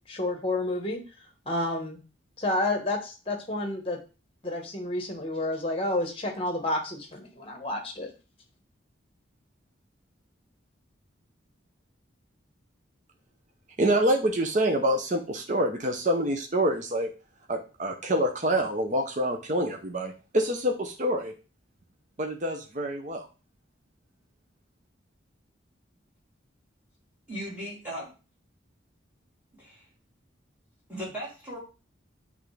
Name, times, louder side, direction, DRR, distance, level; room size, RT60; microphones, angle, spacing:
voice 1, 0.1-1.0 1.5-2.0 2.4-4.0 4.4-8.1, left 1 dB, 30° left, 3 dB, 1.3 m, -30 dB
voice 2, 13.8-17.1 17.5-21.3 22.2-23.3, right 1 dB, 40° right, 3 dB, 0.7 m, -26 dB
voice 3, 27.3-28.1 29.6-29.9 30.9-31.6, equal, 10° right, -7 dB, 3.1 m, -37 dB
8.2 x 3.4 x 3.3 m, 0.33 s
head